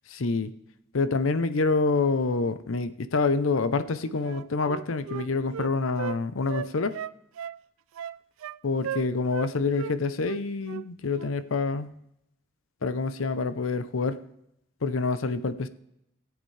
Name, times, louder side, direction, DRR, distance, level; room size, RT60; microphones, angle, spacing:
voice 1, 0.1-0.5 0.9-7.0 8.6-11.9 12.8-14.2 14.8-15.7, left 3 dB, 80° left, 12 dB, 0.7 m, -27 dB
Wind instrument woodwind instrument, 4.2-6.2 6.5-7.6 7.9-8.6 8.8-9.5 9.7-9.9 10.2-10.9 11.1-11.3, right 8 dB, 85° right, 0.3 m, -36 dB
18.0 x 8.0 x 3.3 m, 0.81 s
head